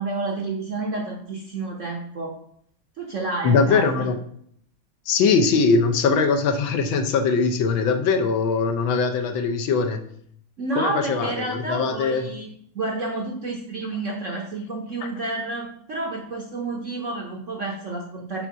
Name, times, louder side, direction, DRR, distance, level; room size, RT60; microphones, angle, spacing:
voice 1, 0.0-2.4 3.0-4.1 10.6-12.5 12.7-18.5, right 3 dB, 55° right, 1 dB, 0.9 m, -30 dB
voice 2, 3.4-4.2 5.1-10.0 10.7-12.3, left 4 dB, 75° left, 6 dB, 1.5 m, -21 dB
5.5 x 4.5 x 6.1 m, 0.65 s
omnidirectional pair, 2.3 m